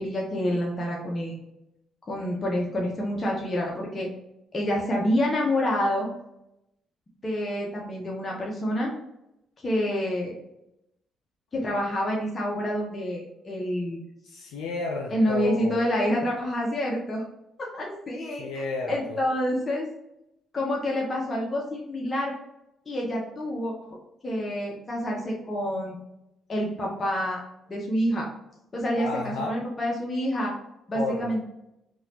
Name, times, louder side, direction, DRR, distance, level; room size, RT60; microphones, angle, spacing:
voice 1, 0.0-1.4 2.1-4.1 4.5-6.1 7.2-8.9 9.6-10.4 11.5-14.0 15.1-17.2 17.7-18.5 18.9-19.9 20.5-22.3 22.9-24.0 24.2-26.0 26.5-27.4 27.7-28.3 28.7-30.5 30.9-31.4, equal, 35° left, -3 dB, 0.9 m, -27 dB
voice 2, 14.2-15.8 18.4-19.2 29.0-29.6 30.9-31.3, left 3 dB, 90° left, -1 dB, 0.5 m, -32 dB
3.9 x 2.5 x 2.9 m, 0.84 s
supercardioid pair, 75°, 0 cm